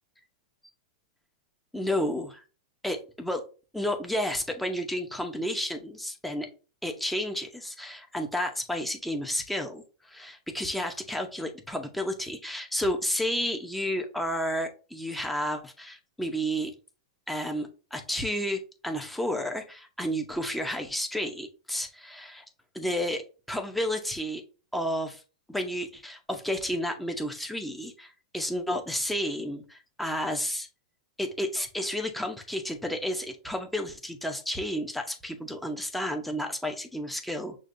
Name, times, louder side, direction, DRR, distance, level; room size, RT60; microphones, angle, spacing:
voice 1, 1.7-2.4 2.8-3.4 3.7-6.5 6.8-16.7 17.3-22.4 22.7-23.2 23.5-24.4 24.7-25.2 25.5-30.7 31.2-37.6, equal, 5° left, 4 dB, 0.8 m, -31 dB
6.2 x 2.6 x 2.6 m, 0.34 s
hypercardioid pair, 120°, 3 cm